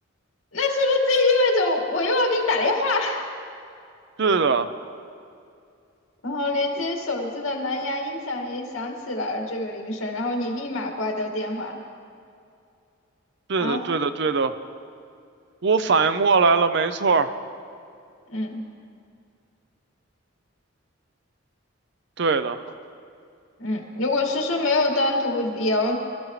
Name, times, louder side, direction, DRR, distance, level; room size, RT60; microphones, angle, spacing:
voice 1, 0.5-3.3 6.2-11.8 13.6-13.8 18.3-18.6 23.6-26.0, left 2 dB, 80° left, 1 dB, 2.1 m, -24 dB
voice 2, 4.2-4.7 13.5-14.5 15.6-17.3 22.2-22.6, right 4 dB, 60° right, 11 dB, 0.6 m, -21 dB
23.5 x 13.0 x 3.2 m, 2.5 s
head